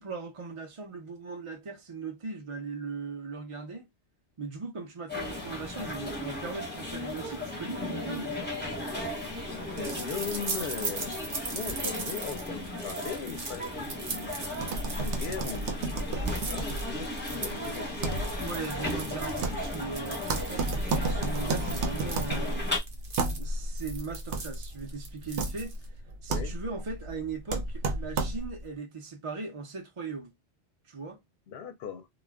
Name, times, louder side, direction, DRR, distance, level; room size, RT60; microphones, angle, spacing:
voice 1, 0.0-3.9 4.4-8.5 18.4-22.7 23.4-25.8 26.2-30.3 30.9-31.2, right 4 dB, 35° right, 0.6 m, -39 dB
sound 1, 5.1-22.8, left 1 dB, 10° left, 0.9 m, -36 dB
sound 2, 9.2-26.0, right 3 dB, 55° right, 0.9 m, -40 dB
voice 2, 9.8-14.4 14.9-17.9 18.2-18.3 26.3-26.5 31.5-32.1, left 7 dB, 70° left, 0.8 m, -39 dB
sound 3, 14.5-28.7, right 2 dB, 85° right, 0.9 m, -33 dB
2.3 x 2.1 x 3.3 m
omnidirectional pair, 1.1 m